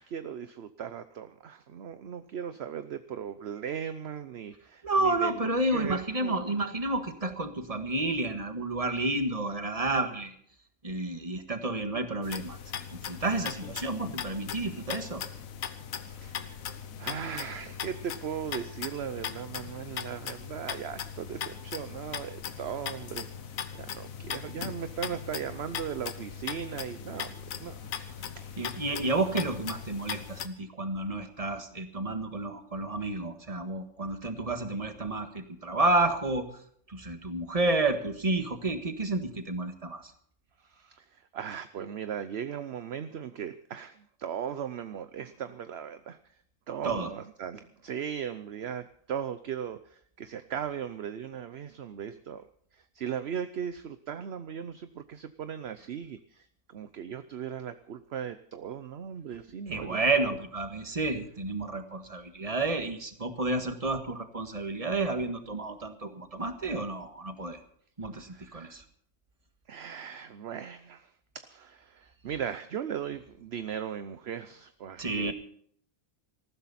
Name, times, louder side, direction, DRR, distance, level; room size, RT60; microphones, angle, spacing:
voice 1, 0.0-6.4 15.9-27.9 28.3-28.6 40.6-46.2 46.7-52.4 52.7-60.0 68.2-68.8 69.7-75.3, right 8 dB, 55° right, 11 dB, 0.9 m, -38 dB
voice 2, 4.8-10.3 10.8-15.2 28.6-36.4 36.9-40.1 46.8-47.1 59.7-67.6 68.0-68.8 75.0-75.3, right 2 dB, 25° right, 7 dB, 1.6 m, -30 dB
sound 1, 12.2-30.5, left 8 dB, 75° left, 1.4 m, -39 dB
19.0 x 14.5 x 4.2 m, 0.62 s
omnidirectional pair, 1.5 m